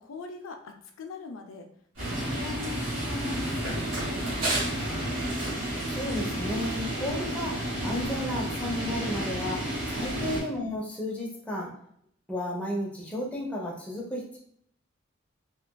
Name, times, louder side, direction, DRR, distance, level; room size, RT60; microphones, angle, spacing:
voice 1, 0.0-1.7 2.0-5.1, left 4 dB, 75° left, 4 dB, 0.4 m, -42 dB
Run, 1.9-7.1, right 1 dB, 80° right, 1.4 m, -36 dB
sound 1, 2.0-10.4, right 1 dB, 40° right, 1.1 m, -32 dB
voice 2, 5.9-9.7 9.9-11.7 12.3-14.4, left 1 dB, 5° left, -4 dB, 0.6 m, -33 dB
2.9 x 2.4 x 2.2 m, 0.68 s
head